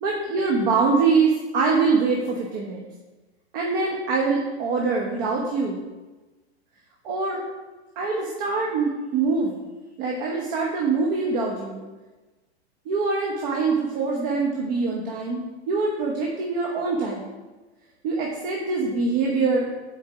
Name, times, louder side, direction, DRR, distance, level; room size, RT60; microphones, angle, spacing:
voice 1, 0.0-2.9 3.5-5.8 7.0-7.4 8.0-9.6 10.0-11.8 12.9-17.3 18.0-19.7, right 4 dB, 50° right, -1 dB, 1.2 m, -24 dB
6.7 x 4.6 x 3.6 m, 1.2 s
hypercardioid pair, 135°, 34 cm